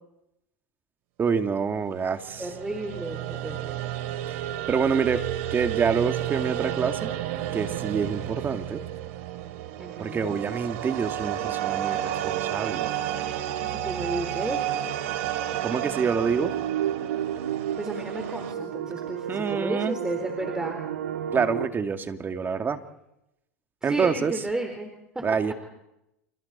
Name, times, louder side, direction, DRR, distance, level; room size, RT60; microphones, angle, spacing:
voice 1, 1.2-2.4 4.7-5.2 5.5-7.1 7.5-8.8 10.0-12.9 15.6-16.5 19.3-20.0 21.3-22.8 23.8-24.3 25.2-25.5, right 6 dB, 25° right, 7 dB, 2.1 m, -26 dB
sound 1, 2.1-18.6, right 12 dB, 65° right, 2.7 m, -31 dB
voice 2, 2.4-3.7 9.8-10.4 13.7-14.7 17.8-20.8 22.5-22.6 23.8-25.2, right 2 dB, 10° right, 3 dB, 4.1 m, -33 dB
sound 2, 16.3-21.7, right 10 dB, 80° right, 1.8 m, -32 dB
30.0 x 29.5 x 4.2 m, 0.86 s
hypercardioid pair, 90°, 8 cm